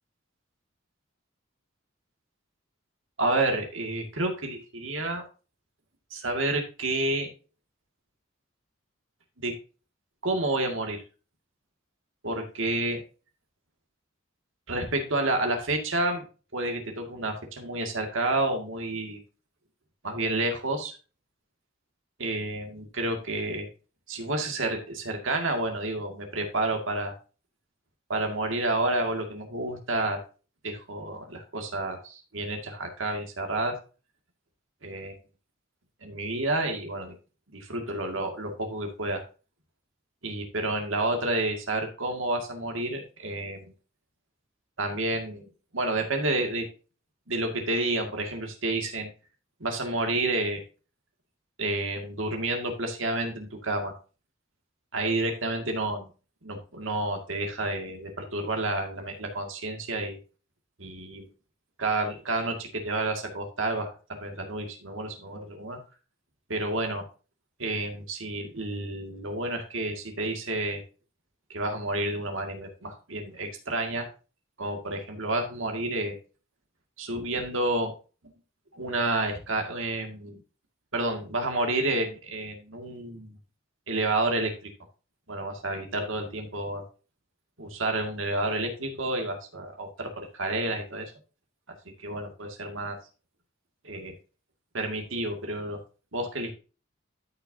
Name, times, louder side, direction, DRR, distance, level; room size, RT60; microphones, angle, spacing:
voice 1, 3.2-5.2 6.1-7.3 9.4-9.6 10.2-11.0 12.2-13.0 14.7-16.2 16.5-19.2 20.0-21.0 22.2-23.7 24.1-27.1 28.1-30.2 30.6-33.8 34.8-35.1 36.0-37.1 37.5-39.2 40.2-43.7 44.8-45.5 45.7-46.7 47.3-49.1 49.6-50.6 51.6-53.9 54.9-56.1 56.4-60.2 60.8-61.3 61.8-65.8 66.5-67.0 67.6-70.8 71.5-74.1 74.6-76.2 77.0-77.9 78.7-80.4 80.9-83.3 83.9-84.7 85.3-86.8 87.6-91.1 92.0-93.0 93.8-94.1 94.7-95.8 96.1-96.5, right 2 dB, 75° right, 3 dB, 2.1 m, -30 dB
13.5 x 6.0 x 2.7 m, 0.34 s
head